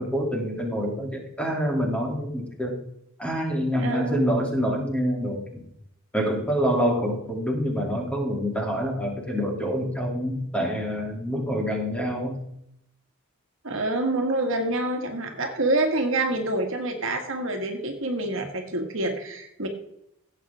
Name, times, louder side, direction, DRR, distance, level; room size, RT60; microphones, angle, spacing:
voice 1, 0.0-2.8 3.2-5.6 6.1-12.4, equal, 5° left, -1 dB, 2.9 m, -26 dB
voice 2, 3.7-4.2 13.6-19.7, right 2 dB, 60° right, 4 dB, 1.8 m, -27 dB
16.0 x 8.5 x 3.6 m, 0.77 s
head